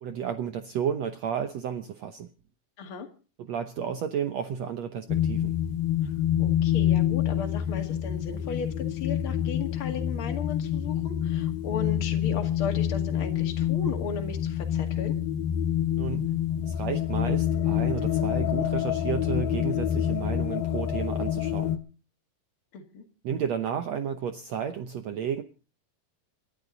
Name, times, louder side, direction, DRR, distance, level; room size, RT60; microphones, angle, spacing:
voice 1, 0.0-2.3 3.4-5.6 16.0-16.4 16.6-21.8 23.2-25.4, right 8 dB, 70° right, 8 dB, 1.6 m, -32 dB
voice 2, 2.8-3.1 6.0-6.1 6.4-15.2 22.7-23.0, left 6 dB, 40° left, 4 dB, 2.6 m, -36 dB
sound 1, 5.1-21.8, left 10 dB, 80° left, 3.0 m, -27 dB
28.0 x 11.5 x 4.0 m, 0.36 s
omnidirectional pair, 4.2 m